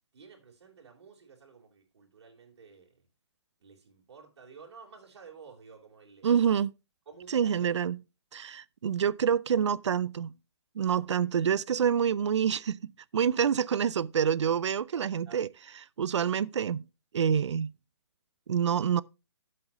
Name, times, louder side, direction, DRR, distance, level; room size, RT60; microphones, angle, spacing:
voice 1, 0.1-3.1 3.6-6.6 7.1-7.7 11.0-11.3 15.3-15.4, right 5 dB, 70° right, 3.7 m, -53 dB
voice 2, 6.2-6.7 7.3-8.0 8.3-10.3 10.8-15.5 16.0-16.8 17.1-17.7 18.5-19.0, right 8 dB, 90° right, 0.5 m, -27 dB
11.5 x 7.6 x 2.9 m
hypercardioid pair, 165°, 15 cm